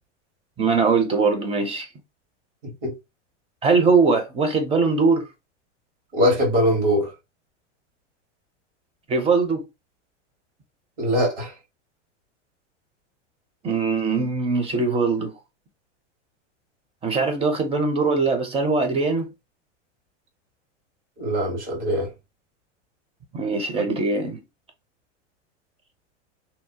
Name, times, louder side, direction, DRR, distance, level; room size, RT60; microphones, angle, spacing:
voice 1, 0.6-1.9 3.6-5.2 9.1-9.6 13.6-15.3 17.0-19.3 23.3-24.4, right 4 dB, 15° right, 0.5 m, -21 dB
voice 2, 6.1-7.1 11.0-11.5 21.2-22.1, equal, 65° right, 1.5 m, -21 dB
2.7 x 2.0 x 2.6 m
hypercardioid pair, 115°, 36 cm